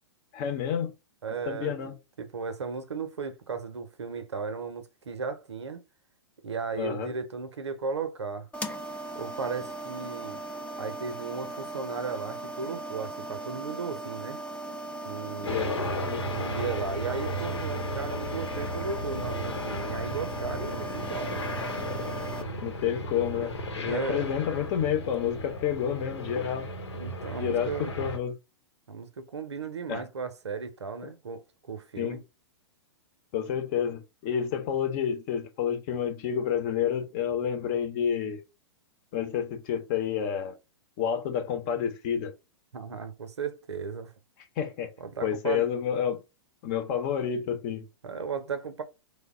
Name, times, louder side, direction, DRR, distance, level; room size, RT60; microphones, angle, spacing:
voice 1, 0.3-0.9 1.5-1.9 6.8-7.1 15.4-16.3 22.6-26.7 27.4-28.3 29.9-30.0 32.0-32.2 33.3-38.4 39.1-40.5 41.0-42.3 44.6-44.9 45.2-46.2 46.6-47.8, left 8 dB, 40° left, 0.8 m, -29 dB
voice 2, 1.2-5.8 6.4-8.5 9.1-10.4 10.8-14.4 15.0-15.9 16.3-21.5 23.8-24.3 26.9-27.9 28.9-32.2 42.7-44.1 45.0-45.7 48.0-48.8, right 5 dB, 75° right, 0.7 m, -35 dB
sound 1, 8.5-22.4, right 2 dB, 10° left, 0.5 m, -38 dB
sound 2, 15.4-28.2, equal, 75° left, 1.0 m, -35 dB
3.2 x 2.1 x 3.6 m
figure-of-eight pair, 110°, 14 cm